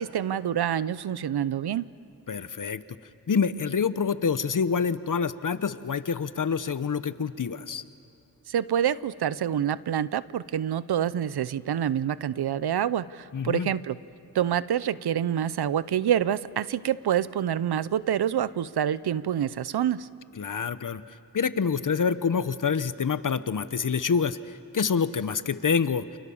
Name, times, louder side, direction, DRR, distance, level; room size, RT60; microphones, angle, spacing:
voice 1, 0.0-1.9 8.5-14.0 14.3-20.1, right 9 dB, 90° right, 17 dB, 0.7 m, -27 dB
voice 2, 2.3-2.8 3.3-7.8 13.3-13.7 20.4-21.0 21.3-26.0, left 6 dB, 55° left, 13 dB, 1.1 m, -27 dB
29.5 x 27.5 x 7.1 m, 2.9 s
cardioid pair, 70°, 38 cm